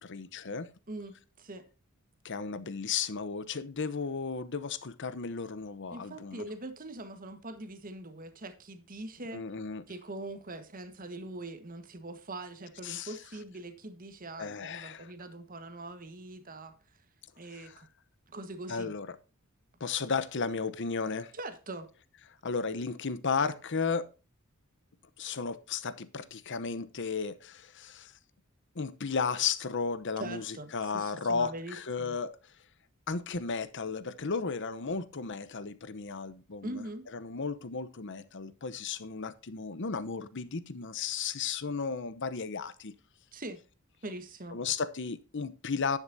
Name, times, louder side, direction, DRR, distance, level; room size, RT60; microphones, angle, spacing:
voice 1, 0.0-0.7 2.2-6.4 9.3-9.8 12.8-13.2 14.4-15.1 17.5-17.8 18.7-19.2 19.8-21.3 22.4-24.1 25.2-28.1 28.7-32.3 33.1-36.8 37.1-42.9 44.5-46.0, left 5 dB, 60° left, 0.9 m, -34 dB
voice 2, 0.9-1.6 5.9-9.4 9.9-16.7 17.4-17.9 18.3-18.9 21.3-21.9 30.2-32.2 36.6-37.1 43.3-43.6 44.0-44.6, right 2 dB, 40° right, 1.5 m, -42 dB
10.5 x 9.8 x 2.7 m
head